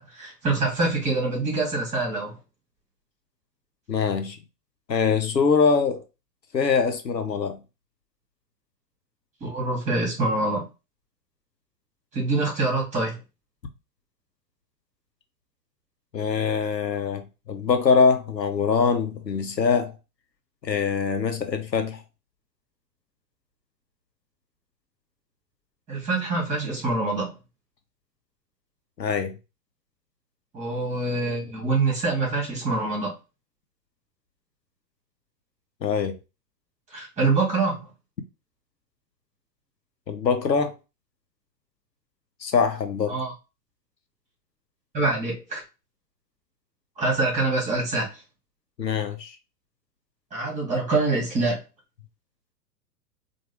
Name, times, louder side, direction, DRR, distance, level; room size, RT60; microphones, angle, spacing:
voice 1, 0.0-2.4 9.4-10.6 12.1-13.2 25.9-27.3 30.5-33.2 36.9-37.8 43.1-43.3 44.9-45.6 47.0-48.2 50.3-51.6, right 3 dB, 15° right, 2.3 m, -25 dB
voice 2, 3.9-4.4 4.9-6.0 6.5-7.6 16.1-19.9 20.6-22.0 29.0-29.4 35.8-36.2 40.1-40.7 42.4-43.2 48.8-49.4, left 5 dB, 90° left, 0.8 m, -23 dB
4.5 x 2.6 x 3.0 m
figure-of-eight pair, 105°, 49 cm